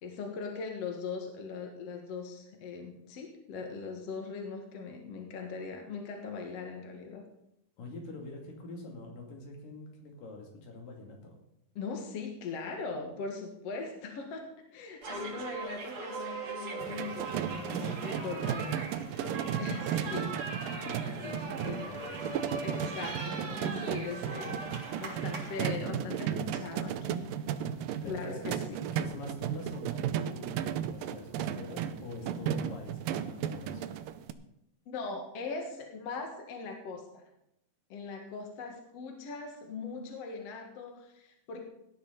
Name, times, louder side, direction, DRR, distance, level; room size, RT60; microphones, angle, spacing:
voice 1, 0.0-7.2 11.8-20.4 21.2-21.8 22.6-24.6 25.0-27.3 28.1-28.8 34.9-37.2 37.9-41.7, left 4 dB, 55° left, 3 dB, 2.3 m, -40 dB
voice 2, 7.8-11.3 19.9-20.3 20.7-22.5 28.0-28.7 28.9-33.8, left 2 dB, 70° left, 1 dB, 4.3 m, -45 dB
sound 1, 15.0-25.7, right 3 dB, 45° right, 2.8 m, -40 dB
sound 2, 16.8-34.3, right 9 dB, 80° right, 2.4 m, -35 dB
17.5 x 11.5 x 4.0 m, 0.78 s
omnidirectional pair, 4.0 m